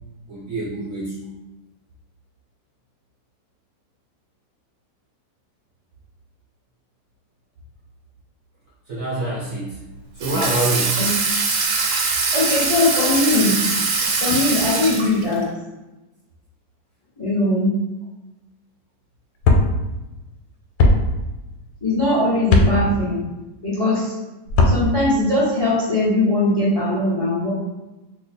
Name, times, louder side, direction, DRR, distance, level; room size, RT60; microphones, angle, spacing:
voice 1, 0.3-1.2 8.9-9.8 10.1-11.0 14.0-14.1, right 2 dB, 70° right, -5 dB, 0.8 m, -26 dB
Water tap faucet / Sink (filling or washing), 10.2-15.4, right 4 dB, 90° right, 1.4 m, -22 dB
voice 2, 12.3-13.6 14.2-15.5 17.2-17.7 21.8-23.3 23.6-24.1 24.6-27.5, left 2 dB, 25° left, -7 dB, 0.5 m, -20 dB
sound 1, 19.4-19.7 20.8-21.0 22.5-22.7 24.5-24.8, left 2 dB, 80° left, 1.2 m, -14 dB
2.9 x 2.1 x 4.1 m, 1.0 s
omnidirectional pair, 2.0 m